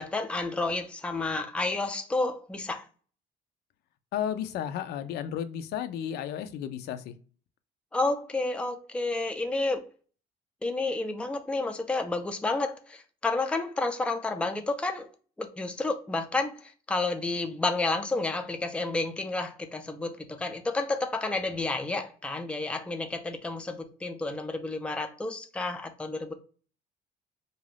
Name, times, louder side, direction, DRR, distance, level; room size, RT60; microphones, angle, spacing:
voice 1, 0.0-2.9 7.9-9.8 10.6-15.1 15.4-26.3, left 3 dB, 5° left, 0.4 m, -30 dB
voice 2, 4.1-7.1, left 9 dB, 75° left, 0.5 m, -33 dB
2.4 x 2.3 x 3.2 m
cardioid pair, 110°, 17 cm